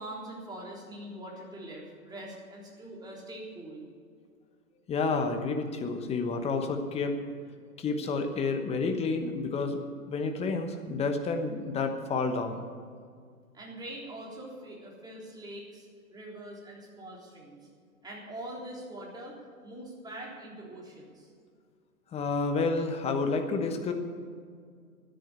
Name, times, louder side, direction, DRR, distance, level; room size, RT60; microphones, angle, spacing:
voice 1, 0.0-3.8 13.5-17.6 18.0-19.4 19.6-21.3, right 1 dB, 10° right, -3 dB, 3.6 m, -43 dB
voice 2, 4.9-7.1 7.8-9.8 10.1-12.6 22.1-23.9, left 4 dB, 15° left, 6 dB, 1.1 m, -30 dB
13.0 x 10.5 x 8.2 m, 2.1 s
hypercardioid pair, 125°, 44 cm